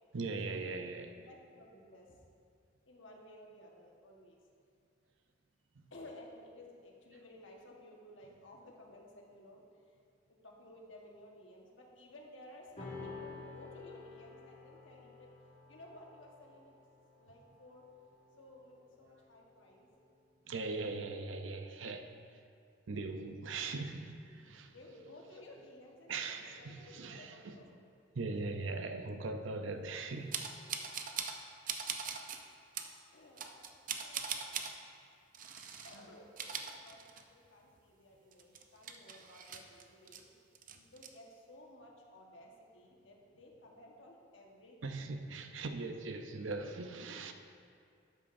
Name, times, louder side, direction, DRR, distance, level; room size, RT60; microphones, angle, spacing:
voice 1, 0.1-1.1 20.5-22.1 22.9-24.7 26.1-27.5 28.1-30.3 44.8-47.3, right 3 dB, 85° right, 7 dB, 0.6 m, -40 dB
voice 2, 1.0-2.2 2.8-4.4 5.9-9.6 10.3-15.3 15.7-16.7 17.2-17.8 18.4-19.9 24.7-27.7 33.1-34.3 35.8-40.2 40.7-45.0, left 1 dB, 85° left, -1 dB, 1.4 m, -56 dB
sound 1, 12.8-19.5, left 4 dB, 40° left, 1.9 m, -51 dB
sound 2, 30.3-31.4 31.7-32.4 32.7-32.9 33.4-34.7 35.3-36.0 36.3-37.5 37.8-37.9 38.3-40.2 40.5-41.1, right 7 dB, 45° right, 0.6 m, -41 dB
11.5 x 8.5 x 2.6 m, 2.4 s
head